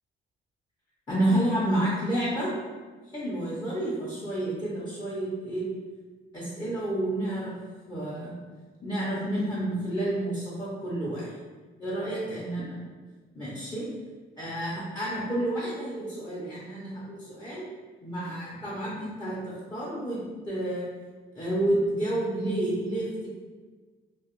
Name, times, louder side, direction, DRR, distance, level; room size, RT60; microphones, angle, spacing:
voice 1, 1.1-2.5 3.1-5.6 6.3-7.5 7.9-8.3 8.8-11.3 11.8-12.8 13.3-13.9 14.4-17.6 18.0-20.2 20.5-20.9 21.3-23.3, right 1 dB, 20° left, -8 dB, 0.7 m, -30 dB
2.3 x 2.0 x 2.9 m, 1.4 s
cardioid pair, 90°, 20 cm